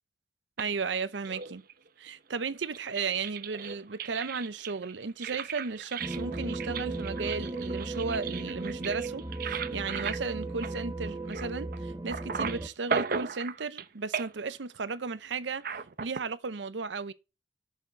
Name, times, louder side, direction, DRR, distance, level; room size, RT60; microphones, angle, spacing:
sound 1, 0.6-1.9 2.5-11.8 12.1-13.9 14.1-14.5 15.6-16.2, right 6 dB, 55° right, 0.7 m, -37 dB
voice 1, 0.6-1.6 2.0-15.6 16.0-17.1, right 4 dB, 90° right, 0.7 m, -35 dB
sound 2, 6.0-12.7, right 2 dB, 20° right, 0.6 m, -36 dB
6.9 x 6.5 x 7.5 m
head